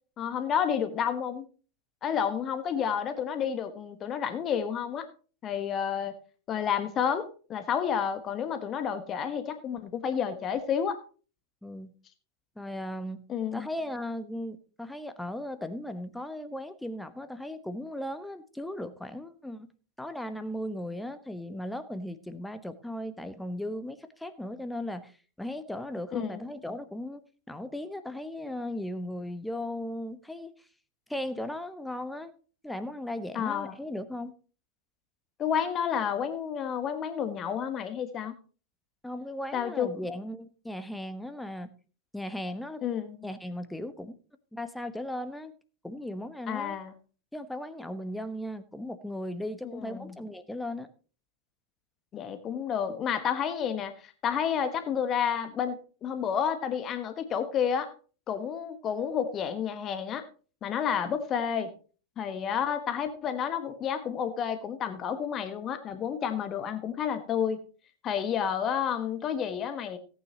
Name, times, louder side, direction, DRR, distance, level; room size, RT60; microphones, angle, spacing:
voice 1, 0.2-1.4 2.0-5.1 5.4-6.1 6.5-11.0 13.3-13.7 26.1-26.4 33.3-33.7 35.4-38.3 39.5-39.9 42.8-43.2 46.5-46.9 49.8-50.1 52.1-57.9 58.3-60.2 60.6-61.7 62.2-67.6 68.0-70.0, left 8 dB, 30° left, 10 dB, 1.2 m, -30 dB
voice 2, 12.6-13.3 13.5-19.7 20.0-27.2 27.5-30.7 31.1-32.3 32.6-34.3 39.0-41.7 42.1-42.8 43.2-44.1 44.5-45.5 45.8-46.8 47.3-50.9, left 1 dB, 5° left, 10 dB, 1.0 m, -37 dB
17.5 x 9.1 x 2.9 m, 0.38 s
figure-of-eight pair, 90°, 0 cm